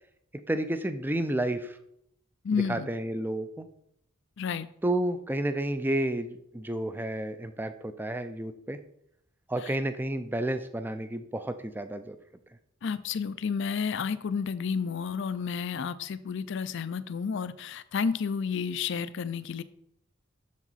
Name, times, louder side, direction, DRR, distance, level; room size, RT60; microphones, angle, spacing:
voice 1, 0.5-1.8 2.7-3.7 4.8-8.8 9.5-12.2, right 1 dB, 10° right, 10 dB, 0.4 m, -31 dB
voice 2, 2.4-2.9 4.4-4.7 9.6-9.8 12.8-19.6, left 6 dB, 60° left, 15 dB, 0.4 m, -31 dB
7.3 x 6.5 x 4.1 m, 0.75 s
head